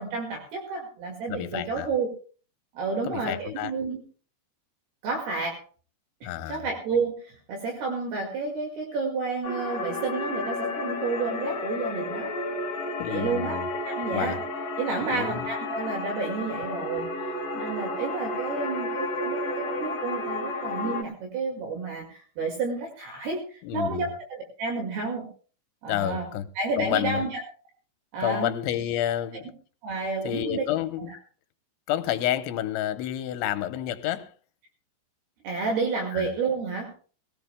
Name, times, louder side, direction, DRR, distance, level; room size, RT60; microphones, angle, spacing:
voice 1, 0.0-2.1 2.8-4.0 5.0-5.6 6.2-12.4 13.1-14.4 14.8-25.3 25.8-26.3 26.6-27.4 28.1-28.5 29.3-29.4 29.8-30.6 31.1-31.2 35.4-37.0, right 4 dB, 65° right, 3.8 m, -31 dB
voice 2, 1.3-1.9 3.0-3.7 6.2-6.6 13.0-13.7 14.1-14.4 15.1-15.4 23.6-24.1 25.9-26.5 26.8-27.2 28.2-29.5 30.2-31.1 31.9-34.3 36.1-36.3, left 12 dB, 85° left, 3.2 m, -29 dB
sound 1, 9.4-21.0, left 2 dB, 50° left, 2.1 m, -32 dB
21.5 x 17.0 x 2.2 m
omnidirectional pair, 5.2 m